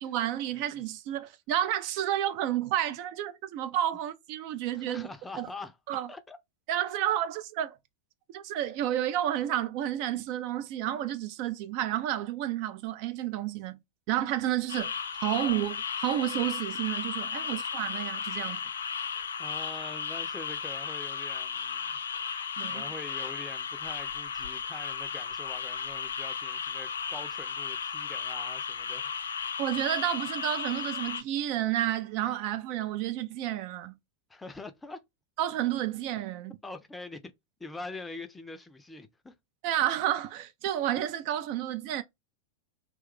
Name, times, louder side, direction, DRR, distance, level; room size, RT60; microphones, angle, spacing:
voice 1, 0.0-5.1 5.4-5.5 5.9-6.1 6.7-7.8 8.3-13.8 14.1-14.9 15.2-18.6 22.6-22.8 29.6-34.0 35.4-36.6 39.6-42.0, right 12 dB, 45° right, 0.3 m, -30 dB
voice 2, 0.5-0.8 4.7-5.8 6.1-6.4 17.4-17.6 19.4-22.0 22.7-29.6 34.3-35.0 36.6-37.3 37.6-39.3, left 3 dB, 10° left, 0.5 m, -44 dB
sound 1, 14.7-31.2, left 6 dB, 65° left, 0.3 m, -35 dB
3.0 x 2.2 x 3.3 m
figure-of-eight pair, 90°, 0 cm